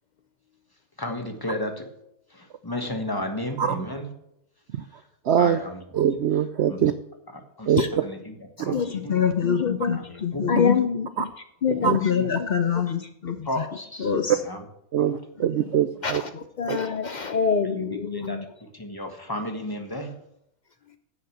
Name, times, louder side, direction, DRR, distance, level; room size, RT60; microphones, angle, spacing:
voice 1, 1.0-1.9 2.3-4.1 5.4-5.8 6.7-6.9 7.3-9.1 9.9-10.6 11.7-11.8 12.2-12.3 13.4-14.6 15.0-15.1 17.6-20.1, left 1 dB, 15° left, 5 dB, 1.4 m, -33 dB
voice 2, 5.3-5.6 5.9-6.9 7.7-7.8 8.6-8.8 11.2-11.3 11.7-12.0 14.9-16.2 16.7-16.8, right 9 dB, 65° right, 11 dB, 0.7 m, -23 dB
voice 3, 8.9-10.8 11.8-13.4 14.0-14.4 16.3-16.4 17.7-17.8, left 7 dB, 45° left, 9 dB, 1.0 m, -25 dB
voice 4, 9.4-10.0 10.5-11.3 11.6-12.3 16.0-16.3 16.6-18.4, left 6 dB, 70° left, 9 dB, 0.4 m, -25 dB
10.5 x 6.5 x 8.0 m, 0.78 s
omnidirectional pair, 1.5 m